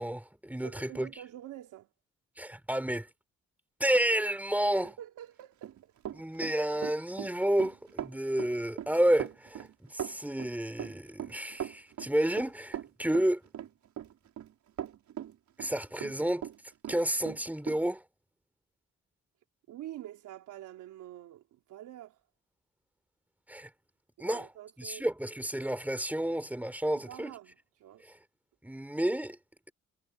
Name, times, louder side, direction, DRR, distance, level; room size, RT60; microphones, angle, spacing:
voice 1, 0.0-1.1 2.4-3.1 3.8-5.0 6.2-13.4 15.6-16.5 16.9-18.0 23.5-23.7 24.2-24.5 24.8-27.3 28.0-28.2 28.6-29.4, right 1 dB, 5° right, 3.8 m, -30 dB
voice 2, 0.6-1.9 4.8-5.9 19.7-22.2 24.2-25.0 26.9-28.0, right 13 dB, 85° right, 3.4 m, -47 dB
Run, 5.4-16.6 16.8-17.8, right 10 dB, 70° right, 5.1 m, -40 dB
cardioid pair, 90°, 30 cm